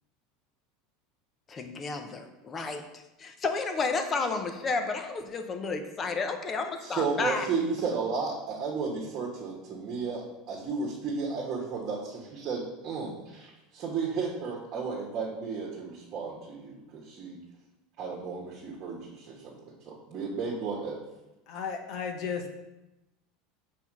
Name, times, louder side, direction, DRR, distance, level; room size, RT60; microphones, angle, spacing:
voice 1, 1.5-7.5, left 4 dB, 25° left, 6 dB, 0.8 m, -32 dB
voice 2, 6.8-17.4 18.0-19.6 19.8-21.0, right 4 dB, 40° right, -3 dB, 1.5 m, -33 dB
voice 3, 21.5-22.5, left 6 dB, 50° left, 4 dB, 1.2 m, -34 dB
6.0 x 4.4 x 6.1 m, 0.97 s
supercardioid pair, 140°, 0 cm